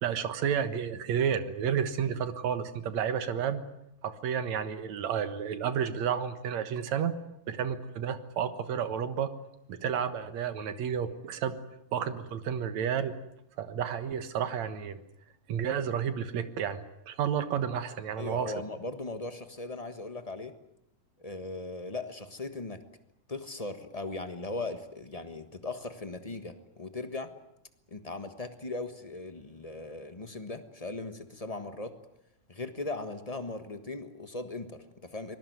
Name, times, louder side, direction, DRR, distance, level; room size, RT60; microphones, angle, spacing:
voice 1, 0.0-3.6 4.0-7.1 7.5-9.3 9.7-11.6 11.9-13.1 13.6-15.0 15.5-18.5, right 8 dB, 70° right, 11 dB, 2.7 m, -31 dB
voice 2, 18.2-20.6 21.2-22.8 23.3-27.3 27.9-32.0 32.5-35.3, left 2 dB, 30° left, 9 dB, 0.6 m, -38 dB
25.0 x 20.0 x 9.5 m, 0.80 s
omnidirectional pair, 3.3 m